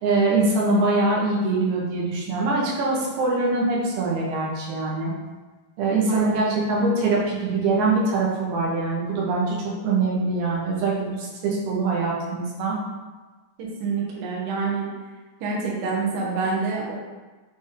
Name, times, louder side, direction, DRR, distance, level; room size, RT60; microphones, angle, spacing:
voice 1, 0.0-5.1 5.8-9.5 9.8-12.8, right 3 dB, 85° right, -4 dB, 3.4 m, -23 dB
voice 2, 6.0-6.4 13.6-14.9 15.4-16.9, right 4 dB, 65° right, -3 dB, 2.4 m, -27 dB
8.3 x 3.6 x 3.9 m, 1.3 s
omnidirectional pair, 4.5 m